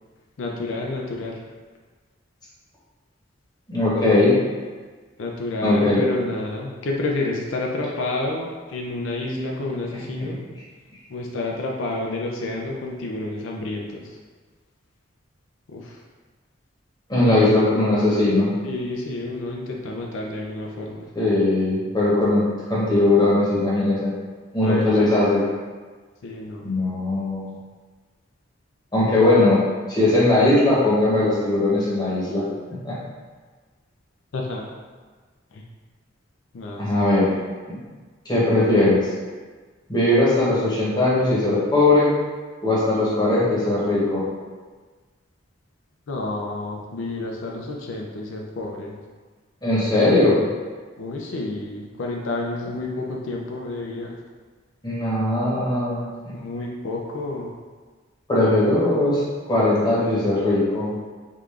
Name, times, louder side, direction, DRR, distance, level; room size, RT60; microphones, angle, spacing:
voice 1, 0.4-1.4 5.2-10.4 11.1-14.0 15.7-16.0 17.3-17.4 18.6-21.1 24.6-25.2 26.2-26.7 34.3-34.7 35.5-35.6 36.5-36.8 46.1-48.9 51.0-54.2 56.3-57.5, left 2 dB, 80° left, -1 dB, 0.4 m, -29 dB
voice 2, 3.7-4.4 5.6-6.0 9.9-10.3 17.1-18.5 21.1-24.1 24.5-25.4 26.6-27.6 28.9-29.6 29.9-32.4 32.8-33.0 36.8-37.3 37.7-37.8 38.2-39.0 39.9-42.1 42.6-44.2 49.6-50.4 54.8-56.3 58.3-59.2 59.5-60.9, left 2 dB, 20° left, -8 dB, 0.9 m, -19 dB
3.6 x 2.4 x 3.2 m, 1.4 s
head